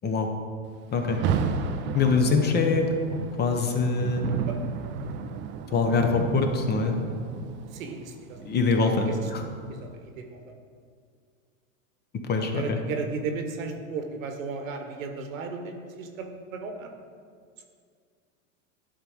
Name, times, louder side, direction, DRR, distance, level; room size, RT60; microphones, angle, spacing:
Rain, 0.9-10.0, right 6 dB, 30° right, 0.5 m, -33 dB
voice 1, 1.9-2.9 3.4-4.2 5.7-7.0 8.4-9.4 12.2-12.8, left 4 dB, 25° left, 4 dB, 0.9 m, -24 dB
voice 2, 7.7-8.4 8.8-9.0 9.8-10.4 12.5-16.9, right 4 dB, 75° right, 4 dB, 1.3 m, -35 dB
11.5 x 3.9 x 5.0 m, 2.1 s
hypercardioid pair, 115°, 40 cm